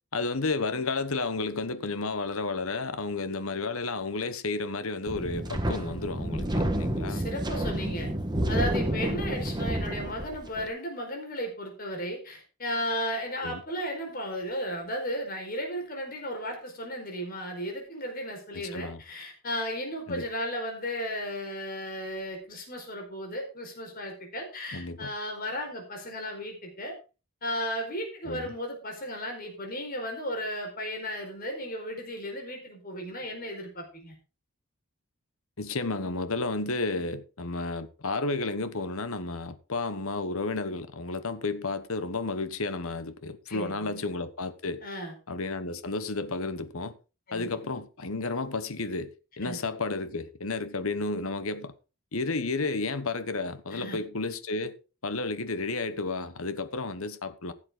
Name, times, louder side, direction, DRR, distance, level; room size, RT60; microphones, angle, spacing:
voice 1, 0.1-7.2 13.4-13.6 18.5-19.0 20.1-20.3 24.7-25.1 28.2-28.5 35.6-44.8 45.3-47.0 47.3-49.1 49.4-51.7 52.1-54.7 55.0-57.5, left 3 dB, 70° left, 1.2 m, -32 dB
Wind, 5.1-10.7, right 1 dB, 20° right, 1.4 m, -30 dB
voice 2, 7.1-8.1 8.5-26.9 27.4-34.1 43.5-44.0 44.8-45.1 47.3-47.6 49.4-49.6 53.7-54.0, equal, 40° left, 4.6 m, -35 dB
15.5 x 7.7 x 3.9 m
head